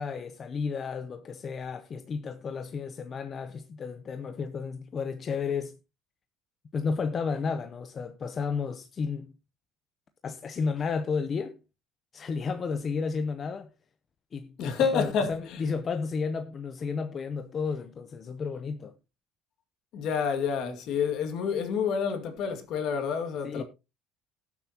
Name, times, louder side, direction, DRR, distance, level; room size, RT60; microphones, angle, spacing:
voice 1, 0.0-5.7 6.7-9.3 10.2-11.6 12.1-13.7 14.3-19.0 23.4-23.6, left 5 dB, 30° left, 0.6 m, -32 dB
voice 2, 14.6-15.6 19.9-23.6, left 6 dB, 55° left, 2.1 m, -29 dB
18.5 x 7.2 x 2.8 m
cardioid pair, 160°, 0 cm